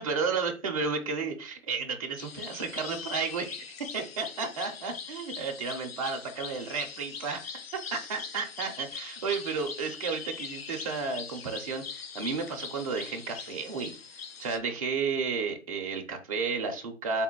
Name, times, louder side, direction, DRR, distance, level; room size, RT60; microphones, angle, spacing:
voice 1, 0.0-7.5 7.9-13.9 14.4-17.2, right 5 dB, 25° right, 2 dB, 0.5 m, -32 dB
sound 1, 2.2-14.6, left 6 dB, 45° left, 0.5 m, -42 dB
3.6 x 2.1 x 4.2 m, 0.34 s
hypercardioid pair, 140°, 43 cm